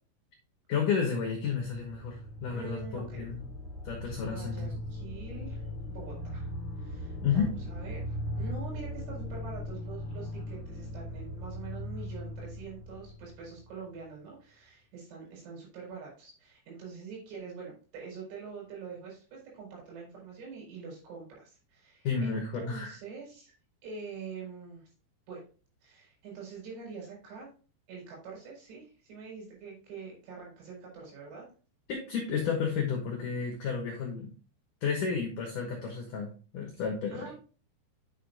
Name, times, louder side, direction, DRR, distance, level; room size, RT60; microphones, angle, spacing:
voice 1, 0.7-3.5 3.8-4.8 7.2-7.6 22.0-23.0 31.9-34.3 34.8-37.3, left 6 dB, 75° left, 2.0 m, -32 dB
sound 1, 1.5-13.9, left 1 dB, 15° left, 3.1 m, -39 dB
voice 2, 2.5-3.3 4.2-5.6 5.9-23.5 23.8-24.9 25.3-25.4 25.8-27.5 27.9-31.5 37.1-37.4, right 5 dB, 85° right, 6.8 m, -45 dB
9.6 x 6.6 x 2.6 m
omnidirectional pair, 5.4 m